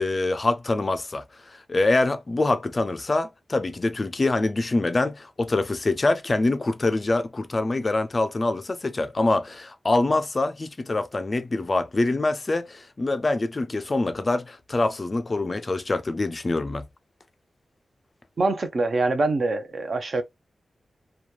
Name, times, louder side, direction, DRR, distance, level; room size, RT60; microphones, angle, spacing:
voice 1, 0.0-16.9, left 2 dB, 30° left, 0.3 m, -25 dB
voice 2, 18.4-20.2, right 2 dB, 50° right, 0.6 m, -24 dB
3.0 x 2.2 x 2.3 m
wide cardioid pair, 145°, 0 cm